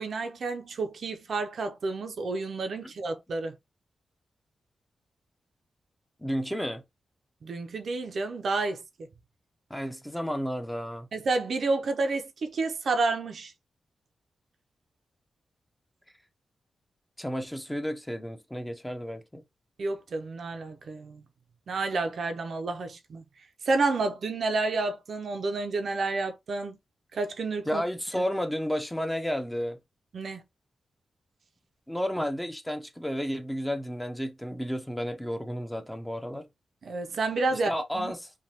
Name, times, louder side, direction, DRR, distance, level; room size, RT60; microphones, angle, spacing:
voice 1, 0.0-3.6 7.4-8.8 11.1-13.5 19.8-21.2 21.7-23.2 23.7-26.8 27.1-27.8 28.2-28.3 30.1-30.4 36.8-38.1, right 3 dB, 65° right, 0.4 m, -30 dB
voice 2, 6.2-6.8 9.7-11.1 17.2-19.4 27.7-29.8 31.9-36.5 37.5-38.3, equal, 5° left, 0.5 m, -32 dB
3.1 x 2.2 x 2.7 m
wide cardioid pair, 105°, 0 cm